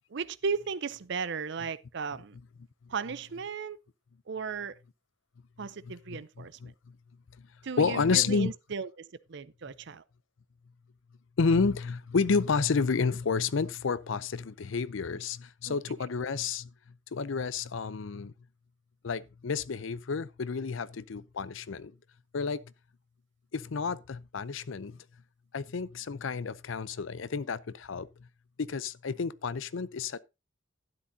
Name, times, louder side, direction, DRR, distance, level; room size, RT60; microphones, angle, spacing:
voice 1, 0.1-2.4 2.9-3.8 4.3-4.8 5.6-6.7 7.6-10.0 15.7-15.8, right 5 dB, 60° right, 0.6 m, -36 dB
voice 2, 7.8-8.5 11.4-16.7 17.1-18.3 19.0-21.9 22.3-22.6 23.5-25.0 25.5-28.1 28.6-30.2, left 5 dB, 75° left, 0.5 m, -30 dB
12.0 x 10.0 x 2.7 m
head